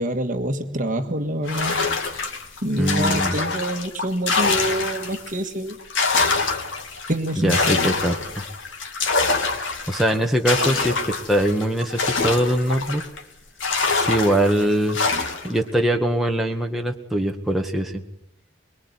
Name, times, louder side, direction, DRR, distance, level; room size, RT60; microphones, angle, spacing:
voice 1, 0.0-1.9 2.6-5.8 7.1-8.1, right 1 dB, 45° right, 1.8 m, -26 dB
sound 1, 1.5-5.3 5.7-13.2 13.6-15.6, left 4 dB, 80° left, 2.6 m, -25 dB
voice 2, 2.8-3.4 7.4-8.4 9.9-13.0 13.9-15.0 15.4-18.0, right 1 dB, ahead, 1.8 m, -22 dB
24.0 x 23.0 x 9.8 m
head